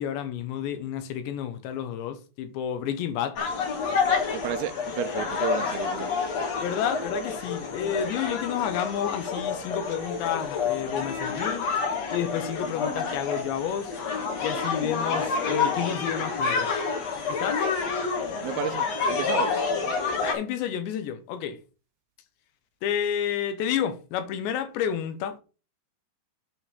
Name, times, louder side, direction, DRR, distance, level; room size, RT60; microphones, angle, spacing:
voice 1, 0.0-3.4 6.6-11.7 12.1-13.9 14.4-16.7 17.3-17.7 20.2-21.6 22.8-25.4, left 9 dB, 85° left, 3.3 m, -30 dB
sound 1, 3.4-20.3, left 5 dB, 50° left, 2.2 m, -28 dB
voice 2, 4.3-6.1 18.4-19.7, right 12 dB, 80° right, 2.3 m, -32 dB
8.4 x 4.3 x 6.9 m
omnidirectional pair, 5.0 m